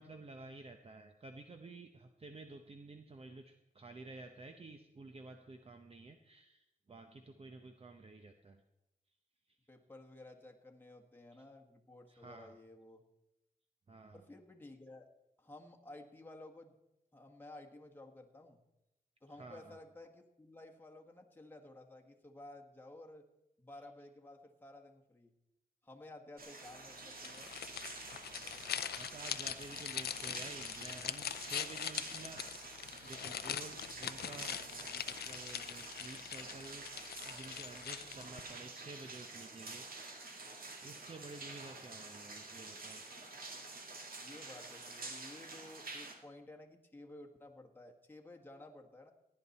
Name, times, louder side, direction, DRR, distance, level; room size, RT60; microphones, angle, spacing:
voice 1, 0.0-8.6 11.3-11.4 12.1-12.5 13.9-14.2 19.3-19.8 28.6-36.9 37.2-40.1 40.8-43.0, right 3 dB, 40° right, 6 dB, 0.8 m, -52 dB
voice 2, 9.7-13.0 14.1-15.1 15.4-16.7 17.1-18.6 19.2-23.2 23.6-25.3 25.8-27.5 44.2-49.1, left 2 dB, 10° left, 2 dB, 1.4 m, -54 dB
sound 1, 26.4-46.1, right 3 dB, 65° right, 2.1 m, -48 dB
sound 2, 27.2-38.4, left 9 dB, 90° left, 0.5 m, -42 dB
16.5 x 9.8 x 4.2 m, 0.91 s
wide cardioid pair, 95°, 16 cm